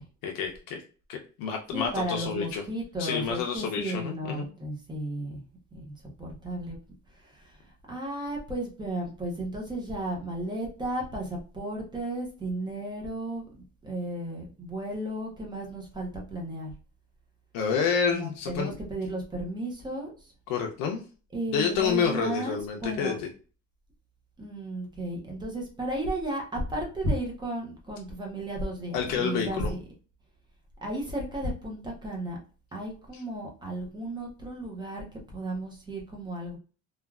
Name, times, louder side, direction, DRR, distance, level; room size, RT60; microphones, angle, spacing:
voice 1, 0.2-0.8 1.1-2.6 3.0-4.5 17.5-18.7 20.5-21.0 21.5-23.3 28.9-29.7, left 6 dB, 70° left, 2 dB, 0.6 m, -29 dB
voice 2, 1.7-5.4 5.7-6.8 7.2-13.5 13.8-16.7 18.1-20.3 21.3-23.2 24.4-29.8 30.8-32.4 32.7-36.6, right 1 dB, 15° right, 0 dB, 0.6 m, -34 dB
3.2 x 2.3 x 2.3 m, 0.37 s
cardioid pair, 165°, 35 cm